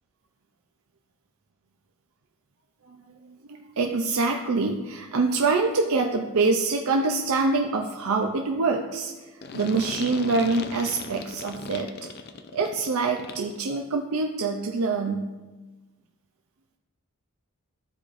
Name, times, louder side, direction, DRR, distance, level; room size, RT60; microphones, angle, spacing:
voice 1, 2.9-11.9 12.5-15.4, right 3 dB, 75° right, 2 dB, 0.5 m, -25 dB
sound 1, 9.4-13.6, left 4 dB, 45° left, 0.4 m, -38 dB
12.5 x 4.9 x 2.5 m, 1.2 s
head